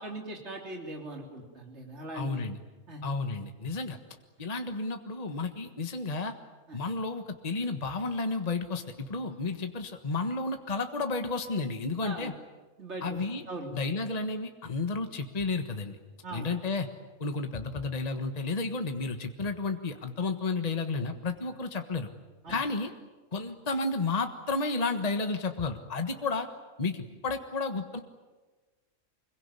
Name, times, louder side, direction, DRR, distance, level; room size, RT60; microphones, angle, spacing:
voice 1, 0.0-2.5 2.9-3.0 6.7-6.8 12.0-12.3 12.8-13.2 13.5-13.7 16.2-16.5 22.4-22.6, right 2 dB, 55° right, 1 dB, 3.7 m, -40 dB
voice 2, 2.1-2.6 3.0-4.0 4.4-6.3 6.7-12.3 13.0-13.4 13.7-16.0 16.3-16.9 17.2-22.1 22.5-22.9 23.3-26.5 26.8-27.0 27.2-28.0, left 3 dB, 30° left, 6 dB, 1.5 m, -32 dB
25.5 x 22.5 x 9.9 m, 1.3 s
omnidirectional pair, 1.4 m